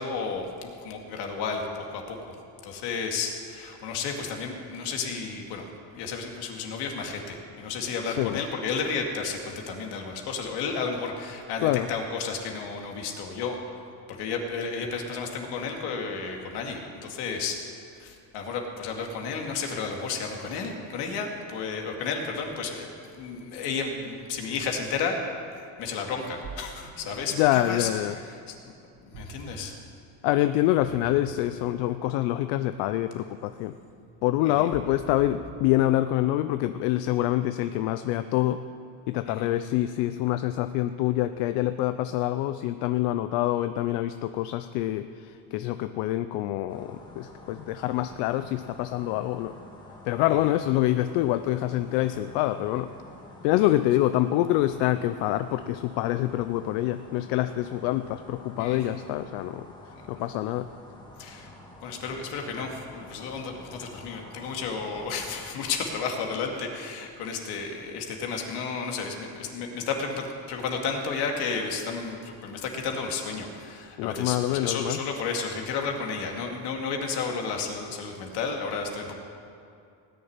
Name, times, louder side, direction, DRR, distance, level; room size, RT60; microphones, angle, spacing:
voice 1, 0.0-2.4 2.6-5.6 5.9-13.6 14.1-17.6 18.0-22.9 23.1-25.1 25.8-27.9 28.3-28.6 29.0-29.8 34.4-34.7 39.3-39.5 58.6-58.8 61.2-61.5 61.8-79.1, left 5 dB, 70° left, 2 dB, 2.3 m, -32 dB
voice 2, 8.0-8.4 11.6-11.9 27.4-28.1 30.2-33.8 34.2-38.6 39.1-49.5 50.1-52.9 53.4-59.7 60.1-60.7 74.0-75.0, left 14 dB, 85° left, 10 dB, 0.7 m, -26 dB
Ocean, 26.1-36.8, right 3 dB, 70° right, 2.1 m, -47 dB
sound 1, 46.7-65.6, left 1 dB, 10° left, 1.8 m, -48 dB
17.5 x 6.9 x 9.6 m, 2.5 s
cardioid pair, 165°, 42 cm